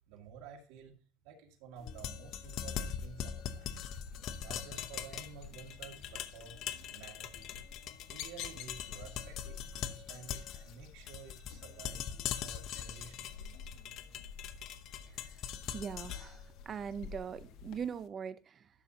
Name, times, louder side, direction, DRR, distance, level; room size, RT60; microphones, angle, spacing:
voice 1, 0.1-0.9 1.2-3.7 4.4-6.5 6.9-7.6 8.1-12.1 12.4-13.6, right 6 dB, 75° right, 2.2 m, -52 dB
sound 1, 1.8-17.9, left 9 dB, 55° left, 0.8 m, -42 dB
sound 2, 3.6-17.8, left 6 dB, 70° left, 1.5 m, -51 dB
voice 2, 15.7-18.7, right 7 dB, 35° right, 0.6 m, -41 dB
12.0 x 6.4 x 2.8 m
supercardioid pair, 120°, 0 cm